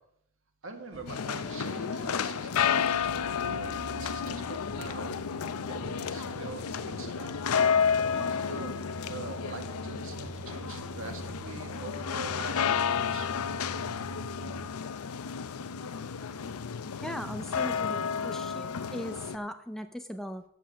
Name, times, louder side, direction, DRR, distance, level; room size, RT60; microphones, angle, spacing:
voice 1, 0.6-5.2 5.7-7.3 8.1-13.3, right 3 dB, 60° right, 5 dB, 1.7 m, -44 dB
sound 1, 0.6-14.7, right 4 dB, 80° right, 0.6 m, -47 dB
sound 2, 0.9-14.3, left 1 dB, 45° left, 1.5 m, -49 dB
sound 3, 1.1-19.4, left 7 dB, 80° left, 0.5 m, -31 dB
voice 2, 17.0-20.4, equal, ahead, 8 dB, 0.5 m, -39 dB
9.1 x 7.4 x 7.3 m, 0.71 s
head